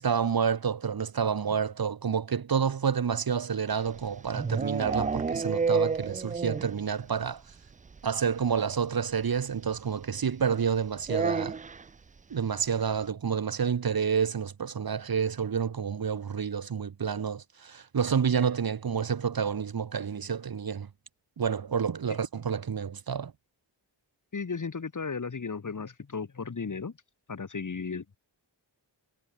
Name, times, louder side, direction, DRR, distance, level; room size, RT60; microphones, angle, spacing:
voice 1, 0.0-7.4 8.0-11.6 12.3-20.9 21.4-23.3, right 7 dB, 50° right, 1.0 m, -29 dB
sound 1, 3.8-6.8 7.1-7.2 7.5-7.6 7.9-8.0 9.2-9.3 11.0-11.9, right 5 dB, 20° right, 0.3 m, -29 dB
voice 2, 24.3-26.9 27.3-28.2, left 5 dB, 40° left, 1.4 m, -35 dB
cardioid pair, 45°, 44 cm